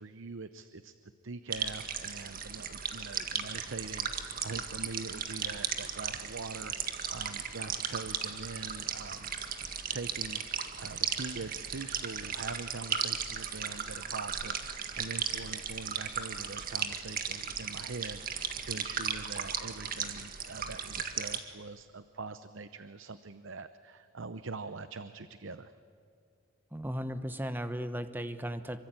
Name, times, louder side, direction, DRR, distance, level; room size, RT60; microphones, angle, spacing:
voice 1, 0.0-9.4 9.9-25.7, right 3 dB, 65° right, 12 dB, 0.8 m, -43 dB
sound 1, 1.5-21.4, right 7 dB, 40° right, 1.8 m, -36 dB
voice 2, 26.7-28.8, equal, 10° right, 10 dB, 1.0 m, -36 dB
26.5 x 24.0 x 9.1 m, 2.4 s
head